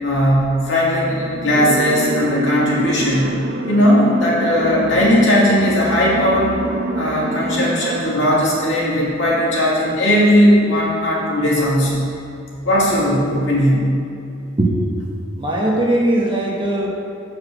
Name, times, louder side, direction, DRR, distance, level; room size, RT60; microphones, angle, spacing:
voice 1, 0.0-3.3 3.7-6.6 6.9-12.0 12.6-13.8, equal, 60° left, -5 dB, 2.1 m, -17 dB
sound 1, 1.5-8.0, right 2 dB, 40° right, 0.5 m, -26 dB
voice 2, 15.4-16.9, right 1 dB, 25° right, -3 dB, 1.0 m, -19 dB
8.0 x 4.8 x 6.3 m, 2.7 s
head